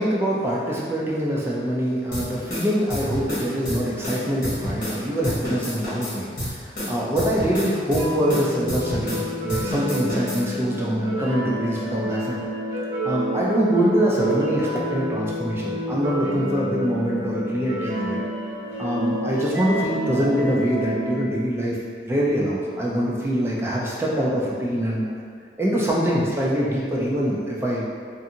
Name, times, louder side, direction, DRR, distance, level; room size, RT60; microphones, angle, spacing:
voice 1, 0.0-12.4 13.0-18.2 18.8-21.8 22.1-25.2 25.6-27.8, equal, 15° right, -5 dB, 0.3 m, -24 dB
sound 1, 2.1-5.0 5.2-9.2 9.5-10.4, equal, 45° left, 1.0 m, -30 dB
sound 2, 7.9-21.2, equal, 85° right, 0.9 m, -30 dB
2.5 x 2.5 x 2.7 m, 2.1 s
head